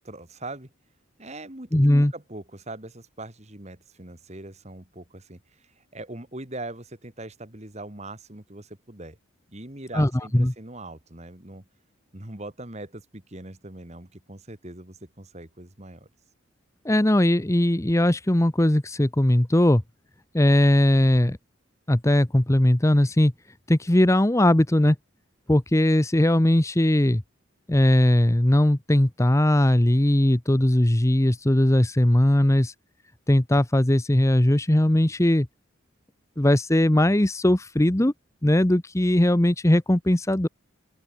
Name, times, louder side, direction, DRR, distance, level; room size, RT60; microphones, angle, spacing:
voice 1, 0.0-0.7 1.2-9.2 9.5-11.7 12.1-16.1, right 2 dB, 30° right, 2.6 m, -41 dB
voice 2, 1.7-2.1 9.9-10.5 16.8-19.8 20.3-21.4 21.9-23.3 23.7-25.0 25.5-27.2 27.7-32.7 33.3-35.5 36.4-38.1 38.4-40.5, left 1 dB, 15° left, 0.8 m, -19 dB
open air
head